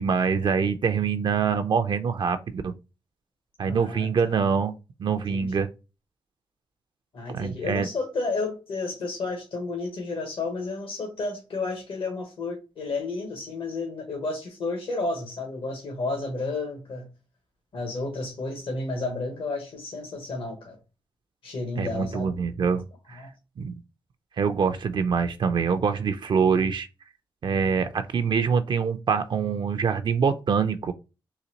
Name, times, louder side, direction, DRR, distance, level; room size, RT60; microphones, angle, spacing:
voice 1, 0.0-2.7 3.6-4.7 5.0-5.7 7.3-7.9 21.8-23.3 23.6-23.7 24.4-26.9 27.4-30.9, right 6 dB, 55° right, 0.4 m, -25 dB
voice 2, 3.7-4.3 5.3-5.5 7.1-17.1 17.7-20.8 21.4-22.3 23.1-23.3, left 3 dB, 75° left, 1.2 m, -32 dB
4.0 x 2.5 x 2.8 m
cardioid pair, 70°, 9 cm